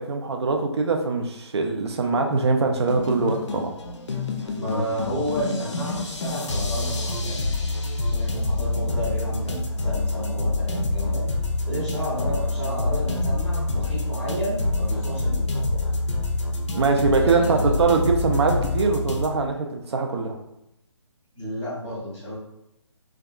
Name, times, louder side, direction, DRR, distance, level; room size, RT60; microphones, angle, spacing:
voice 1, 0.0-3.7 16.7-20.4, right 4 dB, 60° right, 3 dB, 0.4 m, -23 dB
sound 1, 2.7-19.3, left 2 dB, 70° left, 0.4 m, -26 dB
voice 2, 4.6-7.4 8.0-11.2 11.6-15.8 17.2-17.7 21.3-22.4, equal, 15° right, -13 dB, 0.8 m, -31 dB
2.6 x 2.3 x 2.2 m, 0.84 s
figure-of-eight pair, 145°, 16 cm